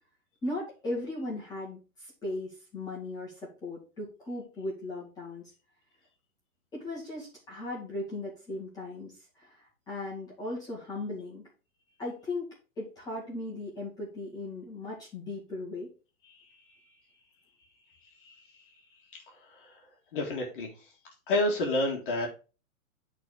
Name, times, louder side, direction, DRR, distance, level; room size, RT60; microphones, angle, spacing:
voice 1, 0.4-5.5 6.7-11.4 12.0-12.5 12.8-15.9, left 2 dB, 10° left, -7 dB, 2.0 m, -37 dB
voice 2, 20.1-20.7 21.3-22.3, left 2 dB, 35° left, 0 dB, 1.9 m, -29 dB
9.6 x 4.1 x 4.8 m, 0.33 s
hypercardioid pair, 175°, 43 cm